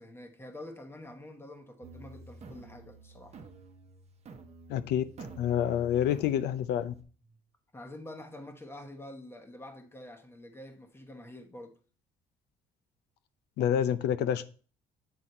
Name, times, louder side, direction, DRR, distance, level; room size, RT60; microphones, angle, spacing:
voice 1, 0.0-3.4 7.3-7.4 7.7-11.8, left 1 dB, 15° left, 1.1 m, -47 dB
sound 1, 1.8-7.0, right 3 dB, 40° right, 0.9 m, -49 dB
voice 2, 4.7-5.0 5.4-6.9 13.6-14.4, left 10 dB, 80° left, 0.6 m, -28 dB
8.1 x 4.0 x 4.3 m
cardioid pair, 110°, 17 cm